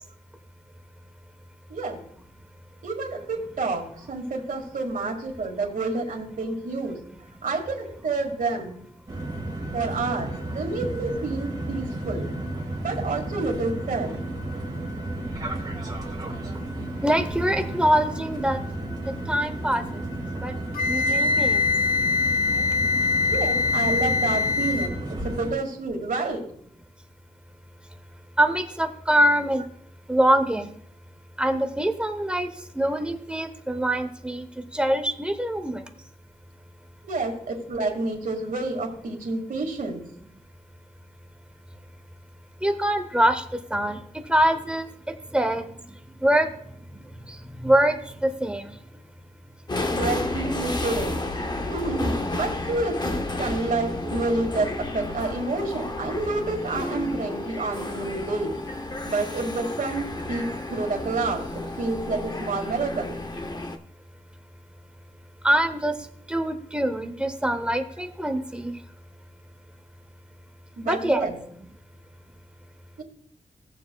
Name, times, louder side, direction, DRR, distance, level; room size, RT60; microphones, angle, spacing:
voice 1, 1.7-2.0 2.8-7.0 7.4-8.8 9.7-12.3 12.8-14.1 23.3-26.4 37.0-40.0 49.9-51.2 51.7-58.5 59.0-63.2 70.8-71.4 73.0-73.1, right 3 dB, 70° right, 0 dB, 1.9 m, -29 dB
sound 1, 9.1-25.5, right 1 dB, 25° right, 1.7 m, -33 dB
voice 2, 17.0-18.6 19.3-19.8 20.4-20.5 20.9-21.7 28.4-29.6 30.1-30.8 31.4-32.5 32.8-34.4 34.7-35.8 42.6-43.4 43.7-44.0 44.3-44.9 45.3-45.6 46.2-46.5 47.6-48.7 65.4-65.9 66.3-68.7 70.8-71.3, right 1 dB, 5° right, 7 dB, 0.8 m, -23 dB
Wind instrument woodwind instrument, 20.7-24.9, left 4 dB, 85° left, 0.7 m, -23 dB
sound 2, 49.7-63.8, left 2 dB, 30° left, 0.7 m, -31 dB
18.0 x 7.0 x 2.3 m, 0.66 s
wide cardioid pair, 165°, 15 cm